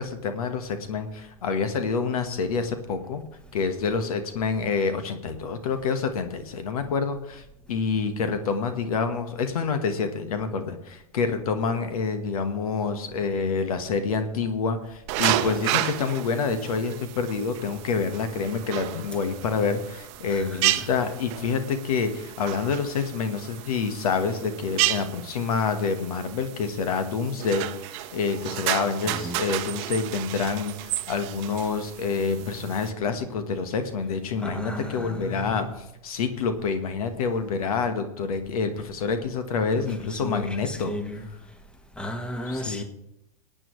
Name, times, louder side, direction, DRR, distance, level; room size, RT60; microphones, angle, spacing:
voice 1, 0.0-3.2 3.5-41.0 42.5-42.8, left 5 dB, 75° left, 1.3 m, -27 dB
sound 1, 15.1-32.9, right 15 dB, 50° right, 0.7 m, -32 dB
voice 2, 20.3-20.9 29.1-29.4 34.4-35.7 39.7-41.3 42.0-42.8, left 1 dB, 5° left, 1.4 m, -35 dB
21.0 x 8.9 x 3.2 m
hypercardioid pair, 115°, 19 cm